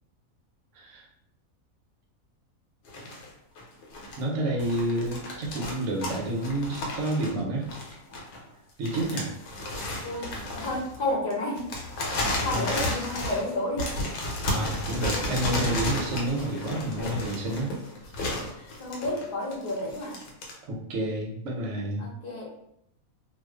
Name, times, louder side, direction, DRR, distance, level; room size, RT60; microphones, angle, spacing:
voice 1, 0.7-1.1 4.2-7.7 8.8-9.3 12.5-12.6 14.5-17.7 20.7-22.1, right 1 dB, 65° right, -1 dB, 0.9 m, -29 dB
sound 1, 2.8-3.3 3.6-4.2 4.6-8.5 8.8-20.5, left 1 dB, 90° left, 1.1 m, -33 dB
voice 2, 10.0-11.7 12.1-13.9 18.5-20.1 22.0-22.5, left 1 dB, 45° left, -3 dB, 0.8 m, -31 dB
2.4 x 2.4 x 2.3 m, 0.75 s
omnidirectional pair, 1.5 m